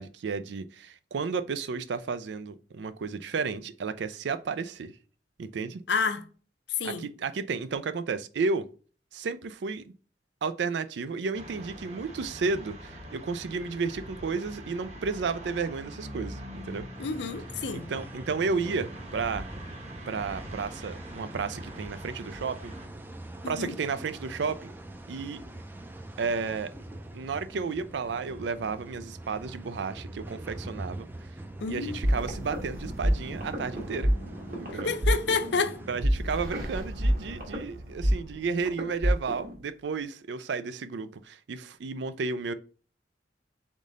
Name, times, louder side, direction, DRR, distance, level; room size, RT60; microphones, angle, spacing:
voice 1, 0.0-4.9 5.4-5.8 6.8-8.7 9.1-9.8 10.4-16.9 17.7-19.5 20.1-22.7 23.5-24.7 25.1-25.4 26.2-26.7 27.1-31.1 31.7-34.1 34.6-34.9 35.9-42.5, right 4 dB, 75° right, 0.4 m, -32 dB
voice 2, 5.9-6.2 6.8-7.1 17.0-17.9 23.4-23.7 31.6-32.0 34.7-35.8, left 4 dB, 70° left, 0.5 m, -29 dB
sound 1, 11.3-22.9, equal, 40° right, 1.0 m, -44 dB
sound 2, 16.9-36.1, right 1 dB, 10° right, 0.4 m, -43 dB
sound 3, 32.0-39.6, equal, 55° right, 1.3 m, -29 dB
3.7 x 3.6 x 3.9 m
head